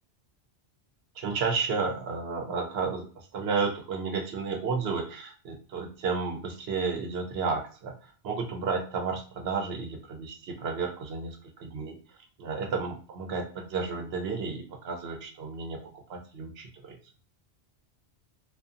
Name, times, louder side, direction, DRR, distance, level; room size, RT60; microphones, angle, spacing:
voice 1, 1.2-12.0 12.4-17.0, right 4 dB, 70° right, 3 dB, 0.8 m, -32 dB
2.4 x 2.4 x 2.5 m, 0.40 s
omnidirectional pair, 1.1 m